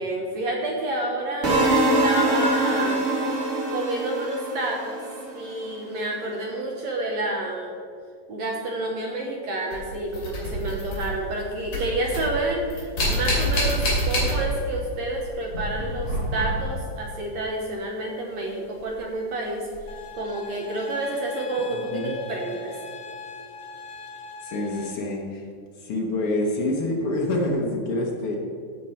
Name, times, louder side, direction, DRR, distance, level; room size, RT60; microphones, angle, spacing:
voice 1, 0.0-1.7 2.0-3.0 3.7-5.0 5.3-7.7 8.3-19.6 20.2-22.7, right 1 dB, 65° right, -1 dB, 1.8 m, -29 dB
sound 1, 1.4-5.5, right 2 dB, 30° right, 1.2 m, -23 dB
sound 2, 9.7-11.4 11.6-14.8 15.1-16.9 18.8-18.9 19.7-19.8, equal, 50° left, 4.0 m, -27 dB
sound 3, 19.9-24.9, left 4 dB, 90° left, 1.1 m, -41 dB
voice 2, 24.4-25.5 25.8-28.4, left 1 dB, 70° left, -1 dB, 1.3 m, -26 dB
15.0 x 5.3 x 4.4 m, 2.3 s
omnidirectional pair, 4.0 m